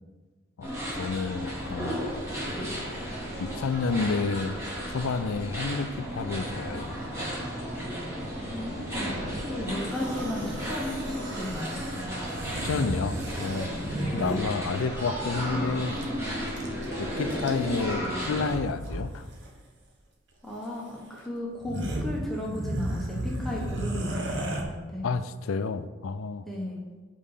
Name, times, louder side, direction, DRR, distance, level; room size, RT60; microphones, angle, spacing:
voice 1, 0.6-2.0 3.4-4.6 4.9-7.0 12.6-13.7 14.1-16.0 17.0-19.3 25.0-26.4, left 4 dB, 80° left, 12 dB, 0.4 m, -30 dB
sound 1, 0.6-18.6, equal, 15° right, 2.0 m, -34 dB
voice 2, 8.5-11.8 13.9-14.2 20.4-25.1 26.5-26.8, left 1 dB, ahead, -4 dB, 1.2 m, -35 dB
sound 2, 9.8-14.5 16.0-16.1 16.3-16.9 17.3-17.8 18.3-19.0 19.3-19.5 20.6-20.7 21.2-21.3 21.5-24.6, right 1 dB, 60° right, 1.2 m, -34 dB
5.5 x 5.1 x 6.6 m, 1.3 s
head